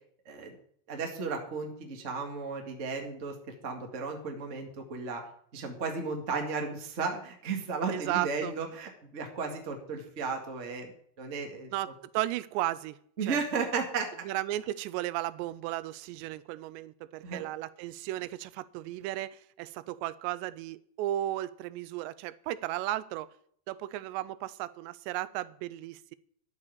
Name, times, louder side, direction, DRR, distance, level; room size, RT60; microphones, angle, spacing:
voice 1, 0.9-3.3 3.6-5.2 5.5-11.7 13.2-14.1 17.2-17.5, right 4 dB, 45° right, 0.9 m, -34 dB
voice 2, 7.9-8.5 11.7-13.4 14.2-23.3 23.7-26.2, right 15 dB, 85° right, 2.8 m, -35 dB
12.5 x 6.8 x 8.3 m
omnidirectional pair, 5.0 m